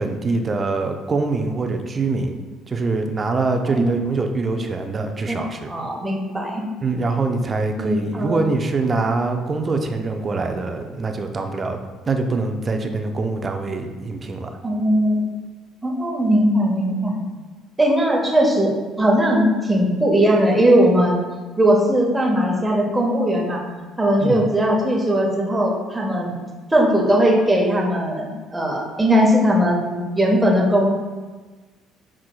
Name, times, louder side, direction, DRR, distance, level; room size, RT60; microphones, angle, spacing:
voice 1, 0.0-2.4 2.7-5.7 6.8-11.8 12.1-14.5 24.2-24.4, right 3 dB, 35° right, 5 dB, 0.6 m, -24 dB
voice 2, 3.7-4.0 5.2-5.4 5.7-6.6 7.8-8.4 14.6-15.2 15.8-17.2 17.8-21.2 21.6-23.6 24.0-26.4 26.7-30.9, equal, 15° right, -1 dB, 1.1 m, -19 dB
6.1 x 3.6 x 2.2 m, 1.3 s
hypercardioid pair, 55°, 0 cm